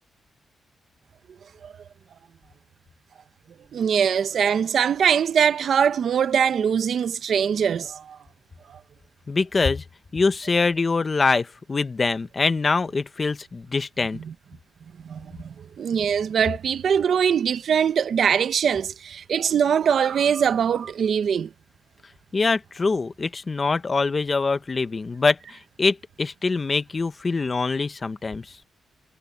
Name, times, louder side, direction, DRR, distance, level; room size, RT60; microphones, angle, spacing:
voice 1, 3.7-8.2 8.7-8.8 15.0-21.5, right 7 dB, 60° right, 0.8 m, -22 dB
voice 2, 9.3-9.8 10.1-14.2 22.3-28.6, left 4 dB, 30° left, 1.0 m, -24 dB
wide cardioid pair, 135°, 0 cm